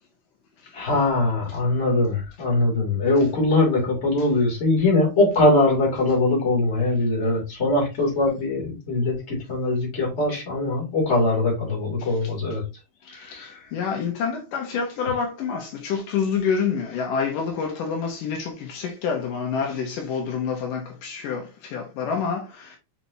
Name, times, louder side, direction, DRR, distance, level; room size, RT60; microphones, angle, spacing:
voice 1, 0.7-12.6 13.1-13.6, left 2 dB, 20° left, 2.9 m, -22 dB
voice 2, 13.1-22.8, left 6 dB, 75° left, 2.8 m, -27 dB
5.9 x 5.7 x 2.8 m
omnidirectional pair, 3.9 m